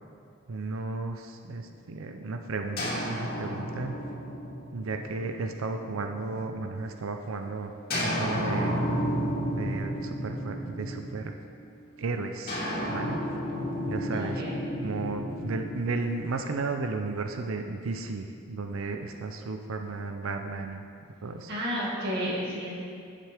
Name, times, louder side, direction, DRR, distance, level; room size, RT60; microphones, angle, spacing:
voice 1, 0.5-4.0 4.7-7.7 8.0-8.8 9.5-11.3 12.0-12.6 12.9-13.2 13.9-14.4 14.8-20.8 21.2-21.5, right 3 dB, 90° right, 5 dB, 0.5 m, -34 dB
sound 1, 2.8-6.6 7.9-11.5 12.5-16.6, equal, 50° left, 2.5 m, -32 dB
voice 2, 14.0-14.5 21.5-22.7, equal, 55° right, -5 dB, 2.2 m, -32 dB
11.0 x 7.5 x 3.5 m, 2.3 s
head